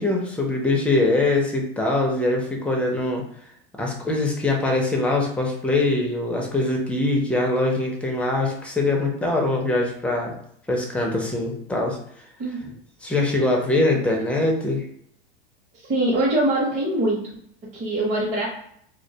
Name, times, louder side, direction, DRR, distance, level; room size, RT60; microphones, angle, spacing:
voice 1, 0.0-3.2 3.8-10.3 10.7-12.0 13.0-14.8, left 2 dB, 5° left, 0 dB, 0.4 m, -23 dB
voice 2, 15.9-17.2 17.7-18.5, right 1 dB, 25° right, -7 dB, 0.7 m, -22 dB
2.3 x 2.1 x 2.7 m, 0.68 s
supercardioid pair, 120°, 29 cm